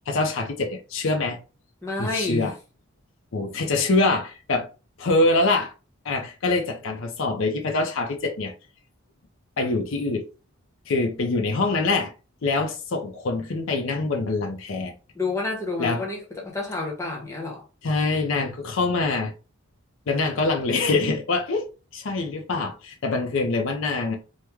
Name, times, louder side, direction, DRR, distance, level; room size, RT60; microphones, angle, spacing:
voice 1, 0.1-1.4 2.0-2.5 3.3-4.7 5.0-5.7 6.0-8.5 9.6-10.3 10.9-12.1 12.4-14.9 15.8-16.0 17.8-19.3 20.1-21.7 21.9-24.2, left 3 dB, 65° left, 0.5 m, -24 dB
voice 2, 1.8-2.5 15.1-17.6, left 3 dB, 15° left, 0.8 m, -29 dB
3.0 x 2.1 x 3.4 m
head